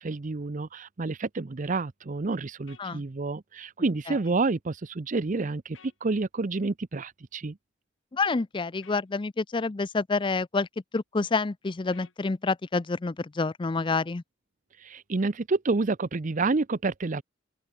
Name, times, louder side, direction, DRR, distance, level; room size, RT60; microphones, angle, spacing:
voice 1, 0.0-7.6 14.8-17.2, right 3 dB, 40° right, 0.6 m, -29 dB
sound 1, 2.7-2.9 5.7-6.0 8.8-9.1 11.9-12.2, left 7 dB, 90° left, 2.0 m, -53 dB
voice 2, 8.1-10.7 10.9-14.2, left 3 dB, 25° left, 0.5 m, -28 dB
head